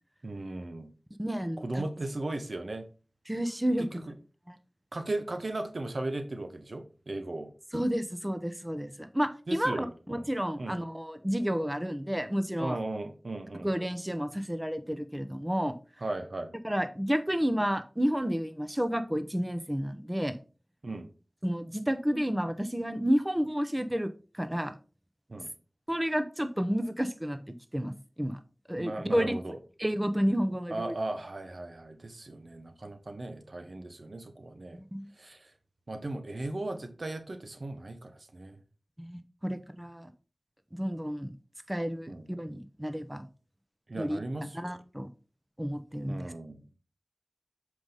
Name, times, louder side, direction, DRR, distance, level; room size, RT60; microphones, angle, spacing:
voice 1, 0.2-0.9 1.6-2.9 3.8-4.1 4.9-7.5 9.5-10.3 10.6-10.8 12.6-13.7 16.0-16.5 20.8-21.1 25.3-25.5 28.8-29.5 30.7-34.8 35.2-35.5 35.9-38.6 42.1-42.3 43.9-44.7 46.0-46.7, right 2 dB, 80° right, 7 dB, 1.0 m, -37 dB
voice 2, 1.2-1.8 3.3-4.1 4.5-4.6 7.7-12.8 13.6-15.8 16.6-20.3 21.4-24.7 25.9-27.4 27.7-27.9 28.2-28.4 28.7-30.9 34.7-35.1 39.0-40.1 40.8-41.3 41.7-43.3 43.9-44.2 44.5-45.1 45.6-46.3, equal, 15° right, 9 dB, 0.8 m, -31 dB
7.1 x 4.9 x 4.0 m, 0.35 s
wide cardioid pair, 40°, 0 cm